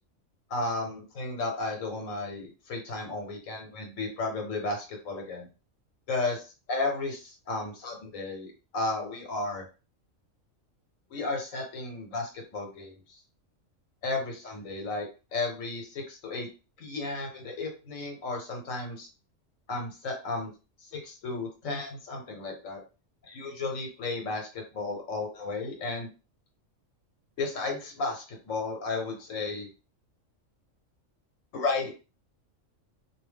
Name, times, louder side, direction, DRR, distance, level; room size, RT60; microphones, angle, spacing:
voice 1, 0.5-5.5 6.1-9.6 11.1-13.2 14.0-16.5 16.8-19.1 19.7-20.5 20.8-22.8 23.3-26.1 27.4-29.7 31.5-31.9, left 3 dB, 80° left, 2 dB, 1.3 m, -33 dB
2.6 x 2.1 x 3.3 m, 0.32 s
omnidirectional pair, 1.4 m